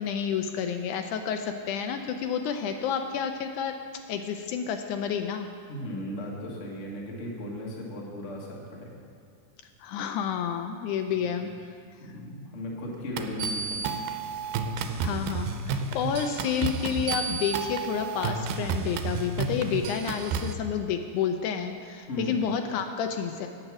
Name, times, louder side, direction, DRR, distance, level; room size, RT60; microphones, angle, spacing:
voice 1, 0.0-3.8 4.1-5.5 9.8-11.7 12.0-12.1 14.8-23.5, left 7 dB, 80° left, 6 dB, 1.9 m, -30 dB
voice 2, 5.7-9.0 11.2-11.4 12.0-14.0 22.1-22.4, left 1 dB, 45° left, -2 dB, 0.9 m, -36 dB
sound 1, 13.2-20.5, right 5 dB, 80° right, 2.0 m, -31 dB
8.7 x 7.9 x 6.0 m, 2.3 s
omnidirectional pair, 3.7 m